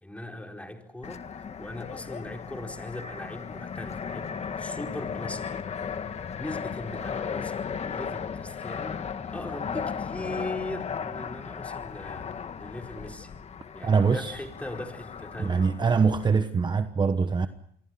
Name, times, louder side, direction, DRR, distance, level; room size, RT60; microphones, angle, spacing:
voice 1, 0.0-5.6 6.4-13.4 13.7-15.7, left 1 dB, 10° left, 4.4 m, -39 dB
Fixed-wing aircraft airplane, 1.0-16.3, left 6 dB, 40° left, 1.7 m, -36 dB
voice 2, 13.8-14.2 15.4-17.5, right 5 dB, 25° right, 1.2 m, -23 dB
28.0 x 23.5 x 5.8 m
cardioid pair, 110°, 17 cm